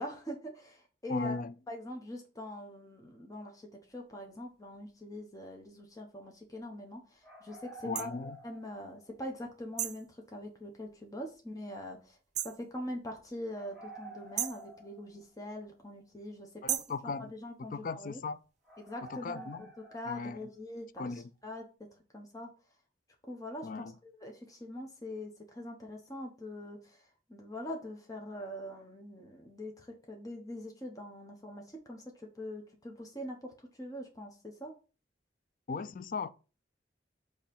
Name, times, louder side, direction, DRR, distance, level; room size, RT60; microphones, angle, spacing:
voice 1, 0.0-1.4 1.7-8.1 8.4-12.1 12.4-16.8 17.0-18.2 18.8-19.5 19.9-21.1 21.4-21.6 22.1-22.5 23.3-27.0 27.3-33.5 33.8-34.7, left 1 dB, 20° left, 1.2 m, -43 dB
voice 2, 1.1-1.5 7.8-8.4 16.6-17.3 17.7-18.4 19.1-19.7 20.1-20.5 21.0-21.3 23.6-23.9 35.7-36.3, left 4 dB, 50° left, 0.4 m, -37 dB
sound 1, 7.2-9.3 9.5-9.6 13.5-15.5 15.8-15.9 17.0-17.1 17.4-17.5 18.1-18.3 18.6-20.6, right 2 dB, ahead, 2.7 m, -51 dB
sound 2, 7.9-8.1 9.8-10.1 12.3-12.6 14.4-14.7 16.7-17.0, right 11 dB, 40° right, 0.5 m, -34 dB
7.1 x 3.2 x 5.4 m
head